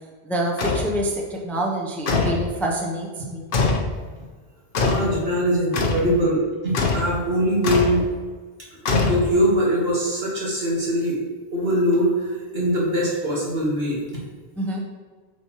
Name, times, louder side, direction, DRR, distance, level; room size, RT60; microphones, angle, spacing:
voice 1, 0.2-3.5 14.6-14.8, right 1 dB, ahead, -1 dB, 0.6 m, -26 dB
sound 1, 0.6-0.9 2.1-2.5 3.5-3.9 4.7-5.1 5.7-6.1 6.7-7.1 7.6-8.0 8.9-9.5, left 4 dB, 60° left, 0.9 m, -22 dB
voice 2, 4.8-8.0 8.9-11.2 11.5-14.0, equal, 75° right, -4 dB, 1.8 m, -22 dB
8.1 x 4.3 x 3.0 m, 1.5 s
omnidirectional pair, 1.0 m